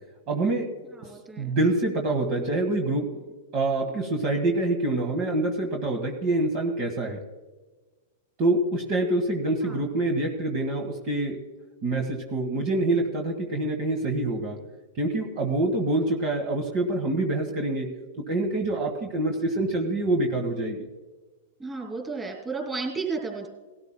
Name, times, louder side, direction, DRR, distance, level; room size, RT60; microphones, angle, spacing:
voice 1, 0.3-0.7 1.4-3.2 3.5-7.2 8.4-11.4 11.8-14.6 15.0-17.9 18.2-20.9, right 2 dB, 40° right, 3 dB, 1.5 m, -26 dB
voice 2, 0.9-1.5 9.6-9.9 21.6-23.5, right 4 dB, 15° right, 2 dB, 2.9 m, -33 dB
19.0 x 13.0 x 2.2 m, 1.3 s
hypercardioid pair, 135°, 0 cm